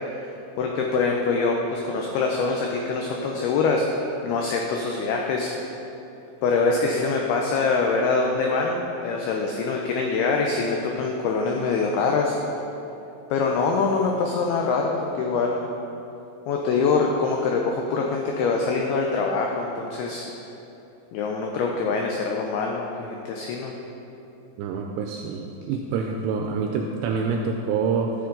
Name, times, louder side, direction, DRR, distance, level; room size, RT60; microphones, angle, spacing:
voice 1, 0.2-5.5 6.4-12.4 13.3-15.7 16.5-20.2 21.1-23.7, left 4 dB, 85° left, 1 dB, 2.2 m, -24 dB
voice 2, 24.6-28.1, right 5 dB, 85° right, 2 dB, 2.5 m, -26 dB
13.5 x 7.1 x 3.8 m, 2.9 s
omnidirectional pair, 5.3 m